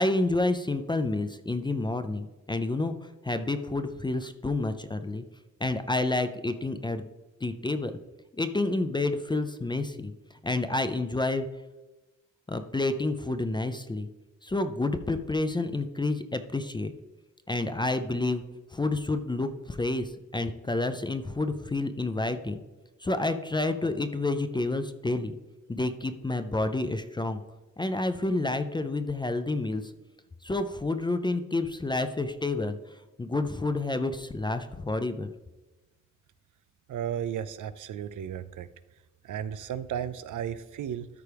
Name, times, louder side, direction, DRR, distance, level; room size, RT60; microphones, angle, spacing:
voice 1, 0.0-5.2 5.6-7.1 7.4-7.9 8.3-10.1 10.4-11.5 12.5-14.1 14.4-16.9 17.5-18.4 18.7-22.6 23.0-25.4 25.7-27.4 27.8-29.9 30.4-35.3, left 2 dB, 15° left, 9 dB, 0.3 m, -29 dB
voice 2, 36.9-38.7 39.2-41.1, right 9 dB, 75° right, 14 dB, 0.5 m, -34 dB
13.0 x 4.7 x 3.4 m, 1.1 s
wide cardioid pair, 150°, 31 cm